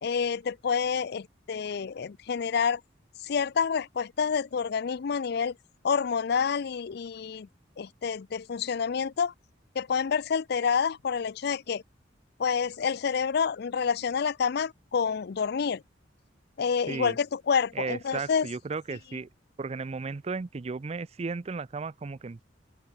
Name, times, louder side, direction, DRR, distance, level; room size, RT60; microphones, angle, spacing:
voice 1, 0.0-2.8 3.2-5.5 5.8-7.5 7.8-9.3 9.8-11.8 12.4-15.8 16.6-18.5, left 6 dB, 60° left, 0.4 m, -28 dB
voice 2, 17.7-19.3 19.6-22.4, right 4 dB, 35° right, 0.4 m, -35 dB
open air
head